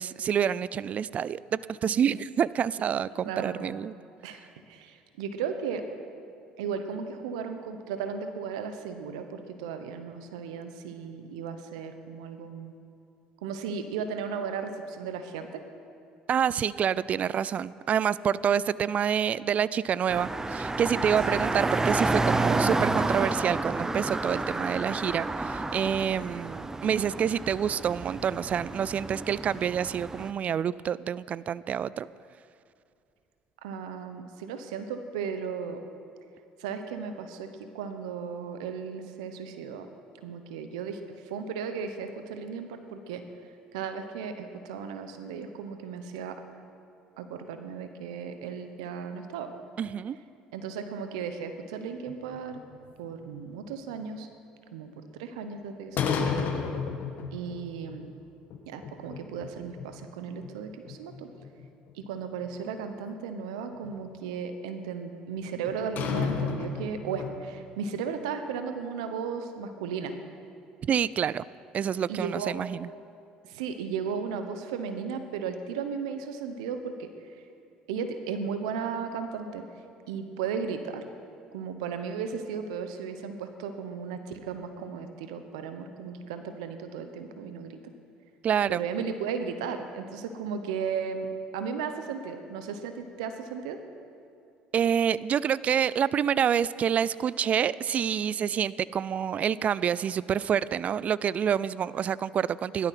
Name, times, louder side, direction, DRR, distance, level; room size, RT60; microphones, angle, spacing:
voice 1, 0.0-3.9 16.3-32.1 49.8-50.2 70.8-71.4 71.7-72.9 88.4-88.8 94.7-102.9, right 8 dB, 45° right, 19 dB, 0.4 m, -27 dB
voice 2, 3.2-3.8 4.2-4.4 4.7-5.8 6.6-12.7 13.4-15.6 21.3-21.4 33.6-35.8 36.6-39.9 40.2-41.0 41.3-43.2 43.7-46.4 47.2-49.5 50.5-52.6 53.0-54.3 54.7-56.3 57.3-58.1 58.7-61.3 61.9-70.2 72.1-72.5 73.4-77.1 77.9-79.6 80.1-81.1 81.5-87.8 88.7-93.8, right 6 dB, 85° right, 8 dB, 1.0 m, -35 dB
sound 1, 20.1-30.3, right 2 dB, 15° right, 0.8 m, -30 dB
sound 2, 52.1-53.4 56.0-57.6 57.9-58.0 58.5-59.5 59.8-59.9 60.4-60.5 60.9-62.3 63.8-63.9 65.7-67.4, left 6 dB, 60° left, 1.7 m, -31 dB
16.0 x 12.0 x 5.9 m, 2.5 s
hypercardioid pair, 70°, 3 cm